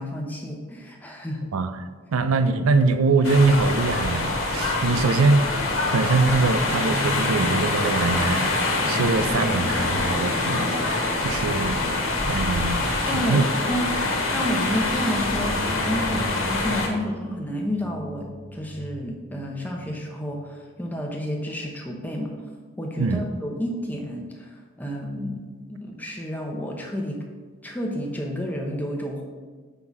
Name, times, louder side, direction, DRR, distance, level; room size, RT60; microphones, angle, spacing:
voice 1, 0.0-1.5 13.1-22.3 22.8-25.4 25.7-27.2 27.6-29.2, equal, 10° left, 0 dB, 0.9 m, -30 dB
voice 2, 1.5-5.5 5.9-11.8 12.3-13.5 23.0-23.2, right 3 dB, 90° right, 11 dB, 0.5 m, -23 dB
sound 1, 3.2-16.9, left 2 dB, 85° left, 1.4 m, -25 dB
sound 2, 6.7-20.0 20.3-20.5 20.9-21.0, left 1 dB, 50° right, 0.8 m, -37 dB
6.1 x 5.6 x 4.7 m, 1.4 s
head